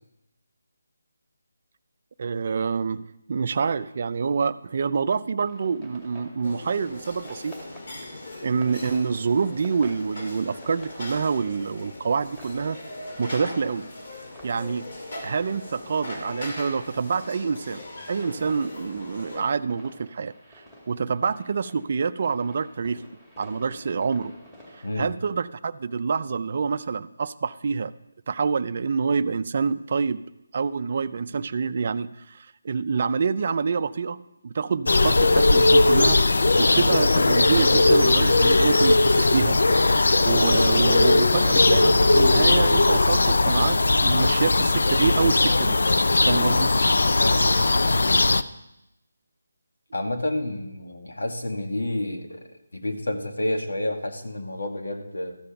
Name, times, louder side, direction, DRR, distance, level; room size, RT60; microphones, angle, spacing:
voice 1, 2.2-7.5 8.4-12.8 13.2-13.9 14.4-14.9 15.2-17.8 18.1-20.3 20.9-23.0 23.4-24.3 25.0-27.9 28.3-30.2 30.5-39.6 40.2-43.8 44.0-45.8 46.3-46.8, right 5 dB, 40° right, 13 dB, 0.4 m, -26 dB
sound 1, 5.4-25.0, equal, 10° left, 2.2 m, -50 dB
sound 2, 6.4-19.4, left 2 dB, 45° left, 2.2 m, -40 dB
sound 3, 34.9-48.4, left 2 dB, 70° left, 0.5 m, -19 dB
voice 2, 47.2-48.0 49.9-55.4, left 1 dB, 90° left, 4 dB, 1.8 m, -30 dB
13.5 x 6.9 x 5.8 m, 0.86 s
figure-of-eight pair, 170°, 0 cm